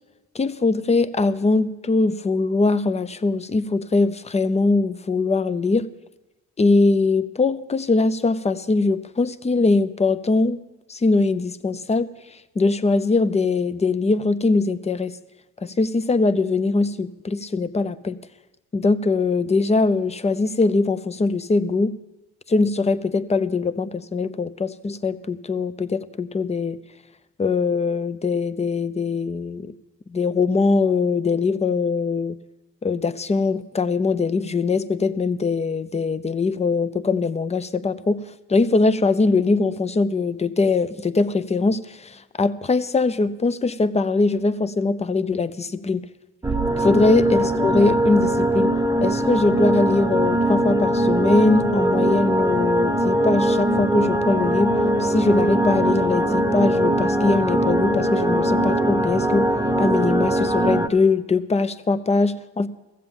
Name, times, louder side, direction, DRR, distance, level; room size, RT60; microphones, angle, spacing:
voice 1, 0.3-5.9 6.6-10.6 10.9-12.1 12.6-15.2 15.6-18.2 18.7-21.9 22.5-26.8 27.4-29.7 30.1-32.4 32.8-38.2 38.5-46.1 46.8-48.7 49.0-59.5 59.8-62.7, left 3 dB, 20° left, 14 dB, 0.6 m, -21 dB
sound 1, 46.4-60.9, right 1 dB, 10° right, 0.8 m, -21 dB
14.5 x 7.6 x 7.0 m, 1.1 s
cardioid pair, 90°, 30 cm